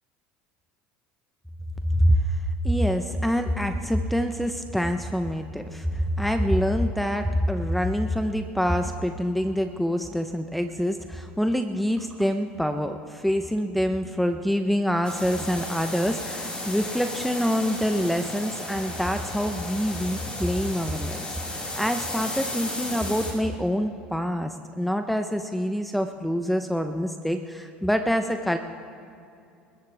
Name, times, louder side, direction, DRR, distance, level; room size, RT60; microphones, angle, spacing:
voice 1, 1.9-2.4 2.6-28.6, equal, ahead, 7 dB, 0.9 m, -26 dB
sound 1, 15.0-23.3, left 1 dB, 20° left, 4.8 m, -34 dB
27.5 x 14.0 x 3.5 m, 2.5 s
hypercardioid pair, 80°, 5 cm